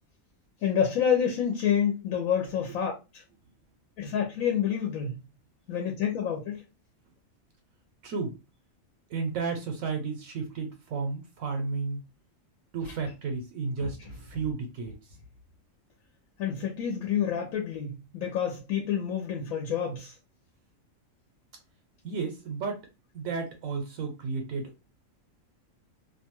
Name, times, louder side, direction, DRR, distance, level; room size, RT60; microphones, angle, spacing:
voice 1, 0.6-3.2 4.0-5.2 5.7-6.6 13.8-13.9 16.4-20.1, left 8 dB, 90° left, 1.1 m, -28 dB
voice 2, 8.0-8.4 9.1-12.0 12.7-14.9 22.0-22.8 23.1-24.7, right 4 dB, 80° right, 1.0 m, -32 dB
2.5 x 2.3 x 2.9 m
omnidirectional pair, 1.4 m